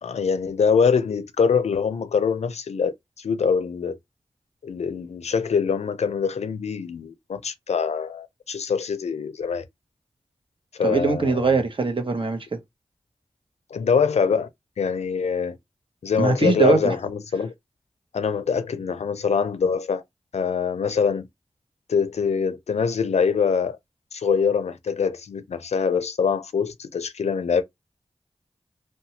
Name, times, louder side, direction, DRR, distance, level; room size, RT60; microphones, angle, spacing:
voice 1, 0.0-4.0 4.6-9.6 10.8-11.6 13.7-14.5 14.8-15.6 16.0-17.5 18.1-20.0 20.3-21.3 21.9-23.8 24.1-27.6, left 6 dB, 85° left, 0.4 m, -24 dB
voice 2, 10.8-12.6 16.2-16.9, right 4 dB, 50° right, 0.8 m, -21 dB
2.7 x 2.3 x 2.8 m
cardioid pair, 40°, 11 cm